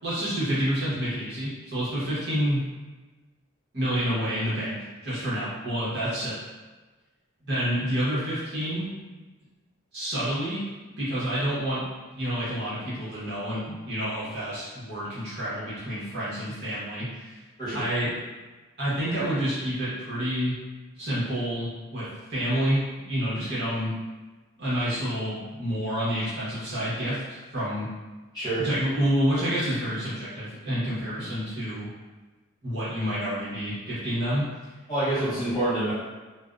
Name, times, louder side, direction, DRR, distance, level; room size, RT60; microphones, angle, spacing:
voice 1, 0.0-2.6 3.7-4.8 5.0-6.4 7.4-8.9 9.9-11.8 12.1-17.3 17.7-18.1 18.8-20.5 20.9-23.9 24.6-27.9 28.6-31.9 32.6-34.5 35.2-35.4, equal, 50° right, -10 dB, 0.9 m, -28 dB
voice 2, 28.3-28.6 34.9-35.9, right 1 dB, 20° left, -12 dB, 1.0 m, -27 dB
2.5 x 2.0 x 2.4 m, 1.3 s
head